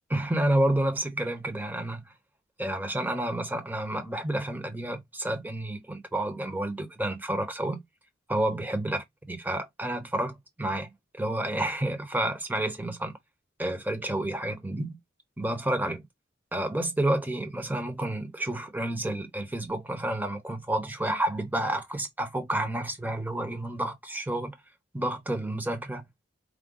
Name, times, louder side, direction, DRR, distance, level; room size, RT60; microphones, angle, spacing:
voice 1, 0.1-2.1 2.6-7.8 8.3-13.2 13.6-15.0 15.4-16.0 16.5-24.5 24.9-26.0, right 1 dB, 10° right, 0.9 m, -30 dB
4.9 x 2.2 x 3.8 m
head